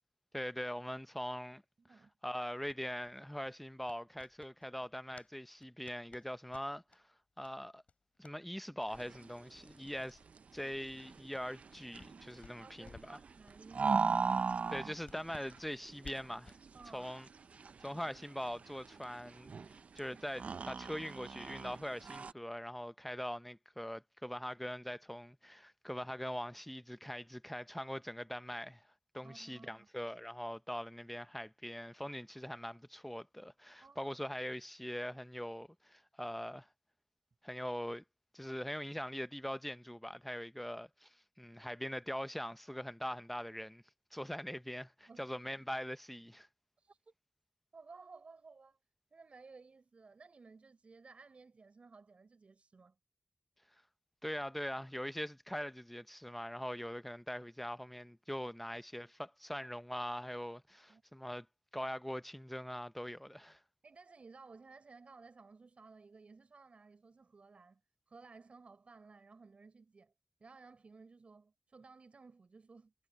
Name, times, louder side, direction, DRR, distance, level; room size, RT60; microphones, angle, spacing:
voice 1, 0.3-1.6 2.2-7.0 7.4-7.8 8.2-10.2 10.5-13.2 14.7-16.6 16.9-17.3 17.8-19.5 20.0-28.9 29.1-36.7 37.4-38.0 38.3-43.8 44.1-46.5 54.2-61.5 61.7-63.6, equal, 5° left, 0.7 m, -42 dB
voice 2, 1.8-2.1 12.6-14.2 16.7-17.1 29.2-29.9 33.8-34.2 45.1-45.6 46.8-47.1 47.7-48.8 49.1-53.0 58.4-58.5 60.9-61.0 63.8-67.8 68.1-70.1 70.4-72.9, right 4 dB, 70° right, 5.5 m, -57 dB
sound 1, 2.6-5.3 5.6-7.0 7.4-7.5 7.8-8.4 8.8-8.9 9.3-9.4 9.6-9.8 10.1-12.2 12.4-13.2 13.5-13.6 13.9-14.0 14.5-16.6, left 4 dB, 85° left, 6.6 m, -59 dB
sound 2, 8.9-22.3, right 5 dB, 90° right, 0.5 m, -39 dB
wide cardioid pair, 90°, 2 cm